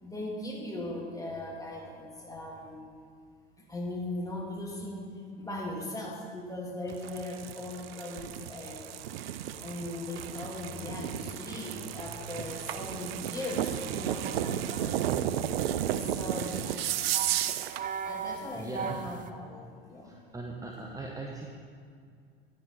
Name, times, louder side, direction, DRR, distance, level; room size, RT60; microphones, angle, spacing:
voice 1, 0.0-2.8 3.6-5.1 5.4-8.8 9.6-15.1 15.9-16.8 18.0-20.2, left 1 dB, 10° left, -2 dB, 2.3 m, -39 dB
sound 1, 6.9-17.9, right 11 dB, 75° right, 0.5 m, -33 dB
sound 2, 14.2-19.3, right 6 dB, 25° right, 0.6 m, -40 dB
voice 2, 18.3-19.1 20.0-21.5, right 2 dB, 10° right, 0 dB, 0.9 m, -40 dB
10.0 x 9.8 x 4.0 m, 2.2 s
hypercardioid pair, 80°, 30 cm